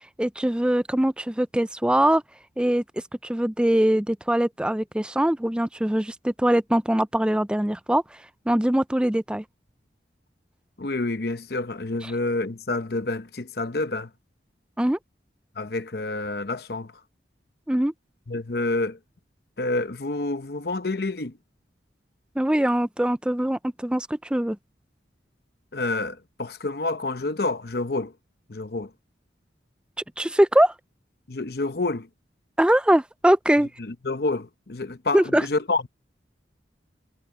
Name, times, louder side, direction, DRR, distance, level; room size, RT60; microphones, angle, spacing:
voice 1, 0.2-2.2 2.6-2.8 3.2-8.2 8.5-9.4 14.8-15.0 17.7-17.9 22.4-24.6 30.2-30.7 32.6-33.7 35.1-35.5, right 1 dB, 5° right, 0.3 m, -22 dB
voice 2, 10.8-14.1 15.6-16.9 18.3-19.0 19.6-21.4 25.7-28.1 28.5-28.9 31.3-32.1 33.8-35.9, left 2 dB, 55° left, 0.9 m, -28 dB
head